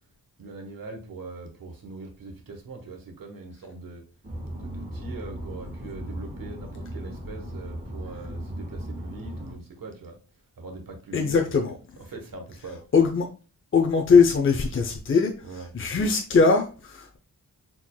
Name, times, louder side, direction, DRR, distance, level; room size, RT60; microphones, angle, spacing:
voice 1, 0.4-4.0 4.5-10.2 10.6-12.8 15.4-15.7, right 3 dB, 65° right, 3 dB, 1.2 m, -41 dB
sound 1, 4.2-9.5, equal, 25° right, 1.5 m, -37 dB
voice 2, 11.1-11.8 12.9-13.3 13.7-17.2, left 5 dB, 35° left, 3 dB, 0.6 m, -21 dB
4.4 x 3.7 x 2.2 m, 0.35 s
wide cardioid pair, 85°, 37 cm